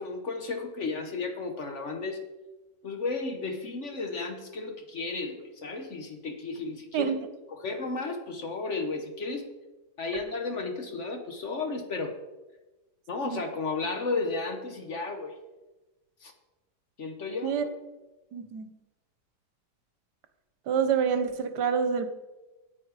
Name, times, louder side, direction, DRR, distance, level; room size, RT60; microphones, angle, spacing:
voice 1, 0.0-2.2 2.8-7.1 7.5-9.5 10.0-12.1 13.1-15.4 16.2-16.3 17.0-17.6, left 3 dB, 50° left, 5 dB, 1.1 m, -33 dB
voice 2, 18.3-18.7 20.7-22.1, right 7 dB, 75° right, 9 dB, 1.4 m, -27 dB
9.2 x 8.8 x 4.8 m, 1.1 s
omnidirectional pair, 1.8 m